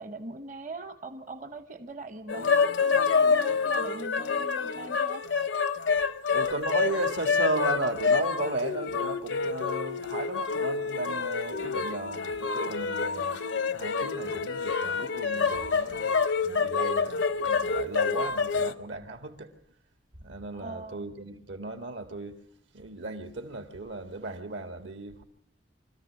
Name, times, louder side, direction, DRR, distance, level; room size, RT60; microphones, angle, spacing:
voice 1, 0.0-5.3 20.5-21.1, right 3 dB, 45° right, 0.8 m, -41 dB
sound 1, 2.3-18.7, left 5 dB, 75° left, 0.7 m, -27 dB
voice 2, 6.3-13.4 13.7-19.5 20.2-22.4 22.7-25.2, right 2 dB, 80° right, 2.0 m, -35 dB
25.0 x 13.5 x 7.6 m
head